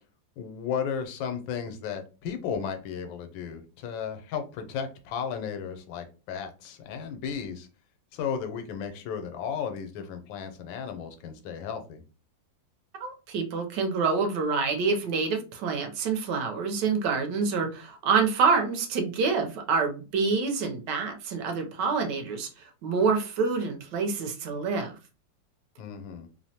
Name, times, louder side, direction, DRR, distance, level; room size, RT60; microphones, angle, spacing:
voice 1, 0.4-7.7 8.1-12.0 25.8-26.3, left 7 dB, 85° left, 6 dB, 1.3 m, -34 dB
voice 2, 13.0-24.9, right 5 dB, 75° right, 4 dB, 1.2 m, -27 dB
3.1 x 2.0 x 2.7 m, 0.33 s
omnidirectional pair, 2.0 m